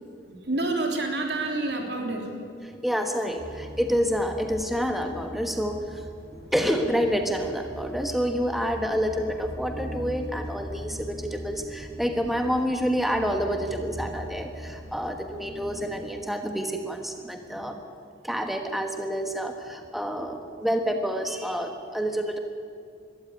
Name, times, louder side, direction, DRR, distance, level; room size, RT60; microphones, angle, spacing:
voice 1, 0.0-2.9 6.2-6.4 17.4-17.8 20.0-20.2 20.9-21.0, right 2 dB, 75° right, 2 dB, 3.4 m, -31 dB
voice 2, 2.8-6.1 6.5-17.8 18.2-22.4, equal, ahead, 4 dB, 1.3 m, -28 dB
sound 1, 3.4-16.0, equal, 15° right, 6.1 m, -40 dB
21.5 x 13.5 x 9.8 m, 2.3 s
head